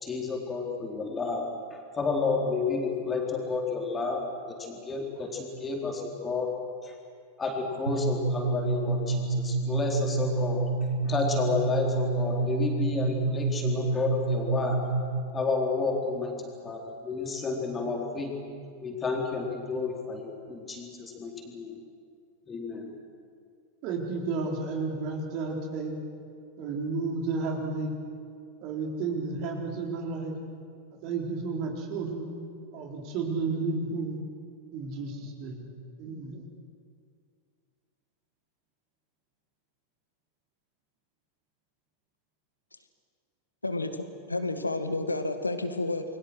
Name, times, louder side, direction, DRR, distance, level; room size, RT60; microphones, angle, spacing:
voice 1, 0.0-4.2 4.5-6.6 6.8-7.0 7.4-10.6 11.0-14.9 15.3-18.4 18.8-21.8 22.5-22.9, left 4 dB, 20° left, 0 dB, 4.1 m, -31 dB
sound 1, 7.9-15.4, right 3 dB, 75° right, 1.3 m, -28 dB
voice 2, 23.8-26.0 26.6-27.9 28.6-30.4 31.0-32.3 32.7-34.2 34.7-35.7 36.0-36.5, right 4 dB, 40° right, 1 dB, 4.2 m, -32 dB
voice 3, 43.6-46.0, left 2 dB, 80° left, 8 dB, 1.8 m, -30 dB
29.5 x 22.5 x 6.3 m, 2.3 s
figure-of-eight pair, 90°, 0 cm